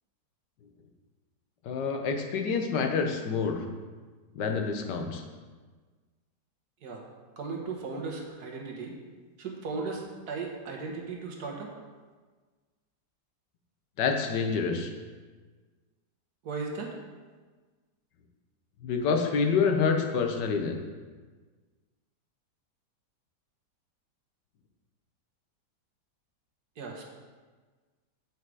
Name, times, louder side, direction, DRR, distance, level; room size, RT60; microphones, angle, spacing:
voice 1, 1.6-3.6 4.3-5.2 14.0-14.9 18.8-20.8, left 5 dB, 80° left, 4 dB, 1.5 m, -27 dB
voice 2, 7.4-8.9 9.4-11.7 16.4-16.9 26.8-27.1, right 4 dB, 65° right, 0 dB, 1.6 m, -36 dB
8.3 x 5.0 x 4.7 m, 1.4 s
omnidirectional pair, 1.8 m